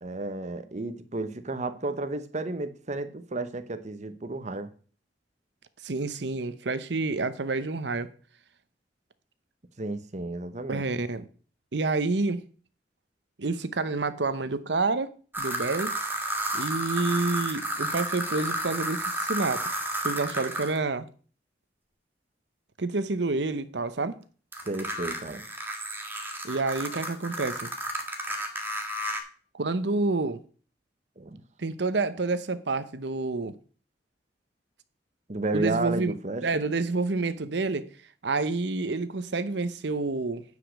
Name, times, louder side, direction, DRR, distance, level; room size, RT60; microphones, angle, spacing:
voice 1, 0.0-4.7 9.8-10.8 24.7-25.4 31.2-31.4 35.3-36.7, right 2 dB, 40° right, 1.0 m, -32 dB
voice 2, 5.8-8.1 10.7-11.3 11.7-12.4 13.4-15.1 15.4-15.9 16.5-19.7 20.0-21.1 22.8-24.2 26.4-27.7 29.5-30.4 31.6-33.6 35.5-36.1 36.4-37.9 38.2-40.4, right 3 dB, 70° right, 0.8 m, -28 dB
sound 1, 15.3-20.8 24.5-29.2, right 1 dB, 10° right, 1.6 m, -32 dB
9.6 x 5.1 x 6.4 m
head